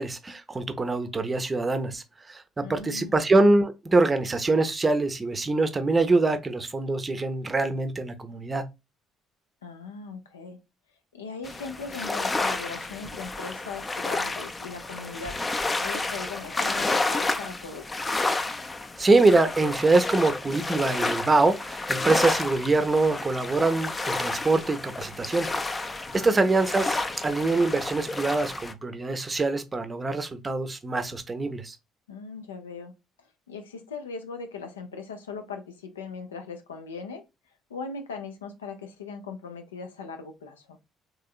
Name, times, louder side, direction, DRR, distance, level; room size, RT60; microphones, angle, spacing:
voice 1, 0.0-8.6 19.0-25.5 26.1-27.0 27.2-31.8, right 3 dB, 25° right, 0.6 m, -24 dB
voice 2, 2.6-3.2 9.6-10.6 11.1-15.4 15.8-17.9 26.1-26.5 32.1-32.9 33.5-37.2 37.7-40.8, left 5 dB, 80° left, 0.5 m, -39 dB
sound 1, 11.4-28.7, left 2 dB, 25° left, 0.5 m, -30 dB
3.5 x 3.1 x 2.3 m
figure-of-eight pair, 50°, 0 cm